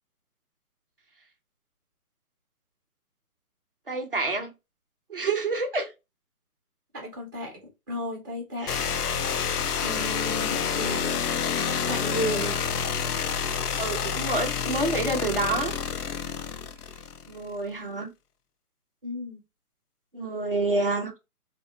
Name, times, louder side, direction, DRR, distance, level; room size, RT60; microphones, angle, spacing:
voice 1, 3.9-4.5 5.1-5.9 8.6-8.9 13.8-15.7 17.3-18.1 20.1-21.1, right 2 dB, 40° right, 0.4 m, -28 dB
voice 2, 6.9-7.5 7.9-8.7 9.8-11.2 11.9-12.5 19.0-19.4, equal, 15° right, 0.8 m, -33 dB
sound 1, 8.7-17.4, left 7 dB, 80° left, 0.5 m, -28 dB
2.4 x 2.0 x 2.4 m
hypercardioid pair, 160°, 46 cm